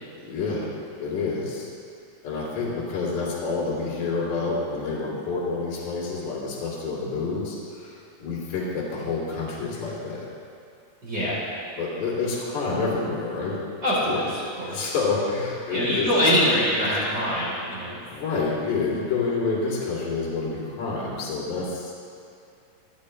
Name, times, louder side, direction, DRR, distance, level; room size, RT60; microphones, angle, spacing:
voice 1, 0.2-0.7 1.0-1.7 2.2-10.3 11.8-13.6 14.0-16.1 17.9-21.9, left 4 dB, 60° left, -6 dB, 3.9 m, -28 dB
voice 2, 11.0-11.4 13.8-14.8 15.7-18.0, equal, 30° right, -10 dB, 4.1 m, -24 dB
26.0 x 9.0 x 3.2 m, 2.4 s
omnidirectional pair, 4.3 m